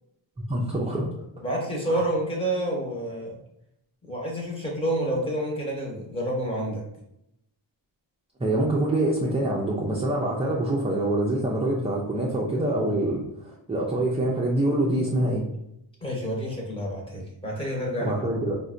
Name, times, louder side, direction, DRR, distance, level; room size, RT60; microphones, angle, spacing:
voice 1, 0.4-1.1 1.9-2.1 8.4-15.4 18.0-18.5, right 1 dB, 15° right, -3 dB, 0.4 m, -25 dB
voice 2, 1.4-3.3 4.1-6.8 16.0-18.1, right 1 dB, 10° left, -3 dB, 0.9 m, -28 dB
3.7 x 2.2 x 2.5 m, 0.80 s
wide cardioid pair, 115°, 47 cm